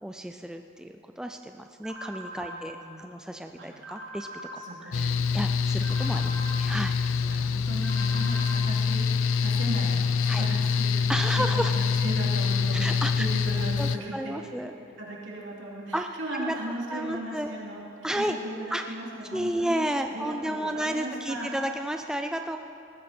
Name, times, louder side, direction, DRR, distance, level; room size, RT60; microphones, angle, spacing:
voice 1, 0.0-4.3 4.5-6.9 10.3-10.4 11.1-11.7 12.7-13.3 13.8-14.7 15.9-16.1 16.3-16.6 16.9-17.5 18.0-18.4 18.7-18.8 19.3-22.6, right 1 dB, 5° right, 5 dB, 0.4 m, -32 dB
sound 1, 1.8-2.6 3.8-4.6 5.8-6.6 7.8-8.6, right 1 dB, 85° right, 1.7 m, -41 dB
voice 2, 2.4-3.1 3.6-3.7 4.6-5.1 7.3-10.0 10.2-11.0 11.4-12.9 13.2-14.7 15.0-17.8 18.1-19.8 20.1-21.5, right 1 dB, 65° right, -3 dB, 3.1 m, -37 dB
Mechanical fan, 4.9-14.0, left 5 dB, 70° left, 0.5 m, -25 dB
19.5 x 14.5 x 4.4 m, 2.7 s
head